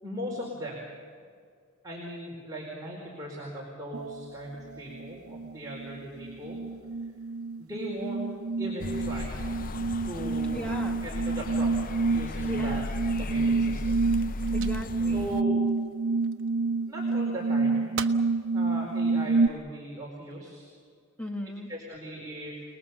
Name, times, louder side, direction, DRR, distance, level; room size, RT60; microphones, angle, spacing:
voice 1, 0.0-0.9 1.8-6.6 7.6-8.3 8.6-9.4 10.0-10.6 11.0-11.7 12.0-12.8 13.2-13.9 15.1-15.7 16.9-17.9 18.5-20.7 21.7-22.6, equal, 15° right, -3 dB, 4.5 m, -38 dB
sound 1, 3.9-4.2 4.7-19.5, right 3 dB, 90° right, 0.7 m, -28 dB
sound 2, 8.8-15.4, left 3 dB, 40° left, 0.5 m, -36 dB
voice 2, 10.5-11.0 12.5-12.8 14.5-15.4 21.2-21.7, equal, 5° left, 3 dB, 1.5 m, -37 dB
sound 3, 14.2-16.6 17.1-17.7 17.9-18.3 18.9-19.6 20.3-20.7, right 6 dB, 60° right, 1.0 m, -43 dB
29.0 x 20.0 x 7.1 m, 2.1 s
head